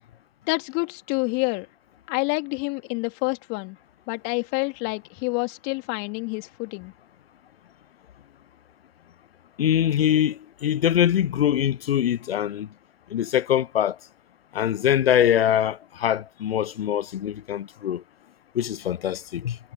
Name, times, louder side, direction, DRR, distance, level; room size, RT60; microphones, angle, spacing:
voice 1, 0.5-1.7 2.1-3.8 4.1-6.9, left 30 dB, 30° left, 3.3 m, -28 dB
voice 2, 9.6-12.7 13.1-14.0 14.5-18.0 18.5-19.6, left 10 dB, 60° left, 0.9 m, -23 dB
figure-of-eight pair, 120°, 35 cm